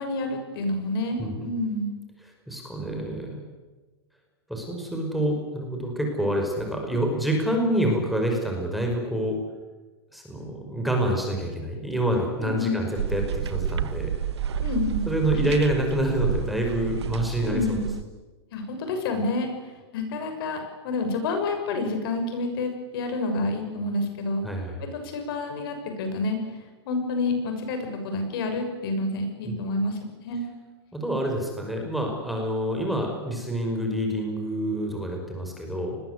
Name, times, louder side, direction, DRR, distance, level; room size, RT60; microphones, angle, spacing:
voice 1, 0.0-1.9 12.4-12.8 14.6-15.1 15.3-15.4 17.4-17.9 18.5-19.5 19.9-24.4 24.9-26.4 26.8-30.4, left 2 dB, 60° left, 6 dB, 6.9 m, -28 dB
voice 2, 2.5-3.4 4.5-9.4 10.1-14.1 15.1-17.8 24.4-24.8 29.4-29.5 30.9-36.0, right 1 dB, ahead, 2 dB, 5.3 m, -27 dB
sound 1, 13.0-18.0, right 8 dB, 90° right, 1.3 m, -30 dB
29.0 x 21.0 x 8.1 m, 1.3 s
hypercardioid pair, 145°, 14 cm